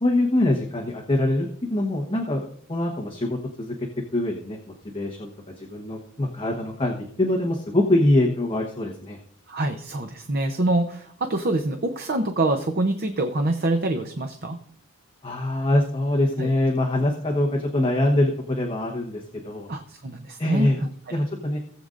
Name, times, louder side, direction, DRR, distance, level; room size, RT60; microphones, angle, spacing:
voice 1, 0.0-3.7 4.1-4.6 4.9-5.3 5.6-9.2 15.2-19.7 20.4-20.8 21.1-21.6, left 1 dB, 25° left, -1 dB, 1.1 m, -24 dB
voice 2, 9.5-14.6 16.4-16.5 19.7-20.7 21.1-21.2, right 2 dB, 45° right, 6 dB, 0.7 m, -25 dB
18.5 x 7.9 x 2.6 m, 0.62 s
head